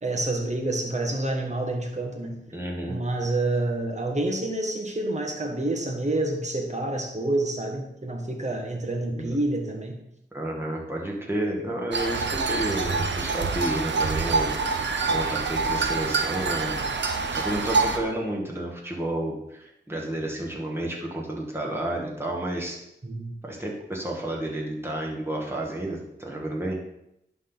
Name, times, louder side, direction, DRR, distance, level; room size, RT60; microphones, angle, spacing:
voice 1, 0.0-2.4 2.9-10.0 23.0-23.3, right 2 dB, 40° right, 2 dB, 1.6 m, -28 dB
voice 2, 2.5-3.0 9.1-9.4 10.3-22.8 23.4-26.8, right 1 dB, 15° right, -2 dB, 2.1 m, -31 dB
sound 1, 11.9-18.0, right 4 dB, 80° right, 0.7 m, -26 dB
11.0 x 3.8 x 4.0 m, 0.81 s
cardioid pair, 50°, 18 cm